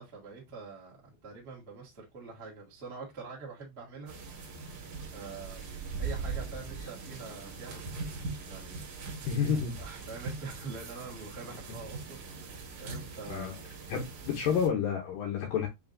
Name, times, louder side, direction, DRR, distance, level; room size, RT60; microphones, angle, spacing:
voice 1, 0.0-4.1 5.1-5.6 6.0-8.1 8.5-9.2 9.8-13.6, right 4 dB, 80° right, 0.5 m, -45 dB
sound 1, 4.1-14.7, right 4 dB, 60° right, 2.0 m, -41 dB
voice 2, 9.3-9.8 13.3-13.5 13.9-15.7, left 7 dB, 80° left, 1.9 m, -30 dB
7.7 x 2.6 x 2.5 m
omnidirectional pair, 5.0 m